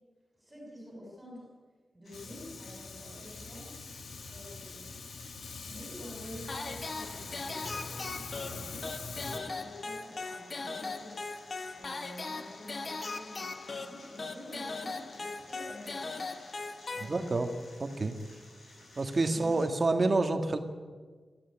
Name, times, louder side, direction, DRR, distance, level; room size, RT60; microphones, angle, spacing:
voice 1, 0.3-1.5 1.9-3.8 4.3-5.0 5.7-11.2 11.7-16.2 16.9-17.4 19.3-19.6, left 1 dB, 10° right, -3 dB, 7.1 m, -48 dB
sound 1, 2.0-19.7, left 2 dB, 70° left, 7.0 m, -55 dB
Fire, 2.1-9.4, left 4 dB, 90° left, 1.9 m, -44 dB
sound 2, 6.5-17.6, left 3 dB, 40° left, 1.0 m, -39 dB
voice 2, 17.1-17.5 17.8-18.2 19.0-20.6, right 3 dB, 35° right, 7 dB, 1.8 m, -28 dB
23.5 x 14.5 x 9.9 m, 1.5 s
wide cardioid pair, 175°, 0 cm